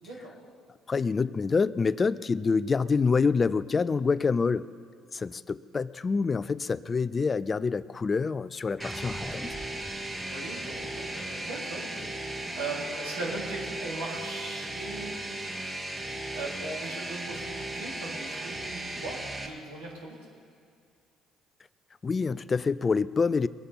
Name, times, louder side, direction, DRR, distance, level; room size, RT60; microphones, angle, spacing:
voice 1, 0.0-0.3 10.1-15.2 16.3-20.1, right 2 dB, 85° right, -4 dB, 3.3 m, -39 dB
voice 2, 0.9-4.7 5.1-9.2 22.0-23.5, left 4 dB, 35° left, 18 dB, 0.4 m, -26 dB
sound 1, 8.8-13.5, left 1 dB, 5° left, 0.8 m, -45 dB
sound 2, 8.8-19.5, right 2 dB, 20° right, 2.1 m, -36 dB
22.5 x 8.4 x 5.7 m, 2.4 s
hypercardioid pair, 55°, 0 cm